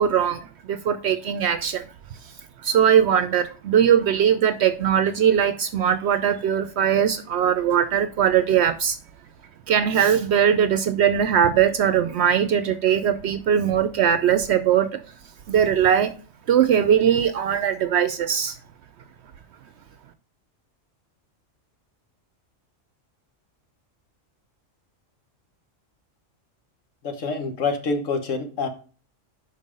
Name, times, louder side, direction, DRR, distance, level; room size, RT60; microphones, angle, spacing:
voice 1, 0.0-1.8 2.6-9.0 9.7-15.0 15.5-16.1 16.5-18.6, right 8 dB, 65° right, 0.8 m, -20 dB
voice 2, 27.0-28.7, left 4 dB, 75° left, 1.5 m, -26 dB
5.4 x 5.3 x 5.2 m
omnidirectional pair, 1.3 m